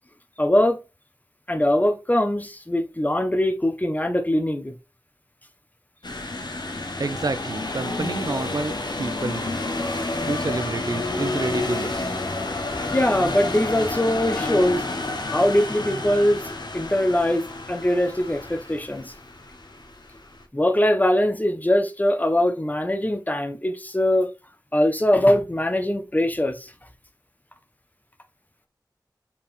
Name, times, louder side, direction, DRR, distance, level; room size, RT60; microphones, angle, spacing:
voice 1, 0.4-0.8 1.5-4.7 12.9-14.9 15.3-19.1 20.5-24.3 24.7-26.7, left 1 dB, 20° left, 1.2 m, -22 dB
sound 1, 6.0-20.4, left 2 dB, 70° left, 1.3 m, -30 dB
voice 2, 7.0-9.5 10.3-12.2, right 3 dB, 55° right, 0.5 m, -29 dB
5.6 x 4.1 x 4.3 m
wide cardioid pair, 45°, 8 cm